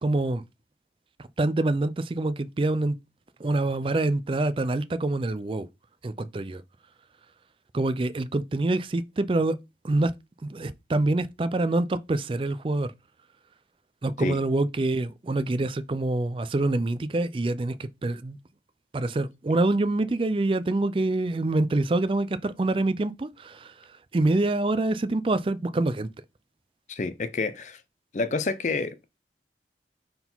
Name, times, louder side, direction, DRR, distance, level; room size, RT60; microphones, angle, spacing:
voice 1, 0.0-0.4 1.2-3.0 3.4-5.7 6.0-6.6 7.7-9.6 9.8-10.1 10.4-12.9 14.0-18.4 18.9-26.1, right 2 dB, 30° right, 0.4 m, -26 dB
voice 2, 26.9-27.8 28.1-29.2, left 3 dB, 40° left, 0.5 m, -29 dB
4.6 x 3.8 x 5.4 m
head